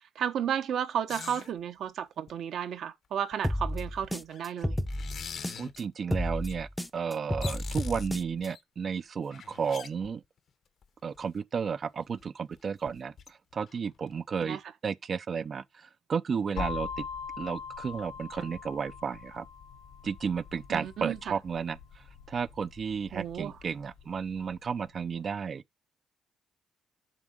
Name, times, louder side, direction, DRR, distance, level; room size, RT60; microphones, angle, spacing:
voice 1, 0.1-4.8 14.4-14.6 20.7-21.4 23.1-23.5, right 9 dB, 70° right, 1.1 m, -33 dB
sound 1, 1.1-1.5 2.3-2.4 3.3-3.4 3.7-5.8 6.4-6.6 7.0-7.1 7.2-8.6 9.2-10.4 10.8-10.9 11.1-11.2 12.2-12.3 12.5-12.6 12.9-13.3 13.7-14.1 14.4-14.5, left 7 dB, 60° left, 1.0 m, -44 dB
sound 2, 3.4-5.8 6.1-8.5, left 1 dB, 5° left, 0.6 m, -32 dB
voice 2, 5.6-10.2 11.0-14.6 14.8-17.1 17.4-19.5 20.0-25.6, right 6 dB, 45° right, 0.5 m, -33 dB
sound 3, 16.6-24.4, left 6 dB, 85° left, 2.7 m, -42 dB
7.3 x 3.6 x 6.4 m
cardioid pair, 90°, 0 cm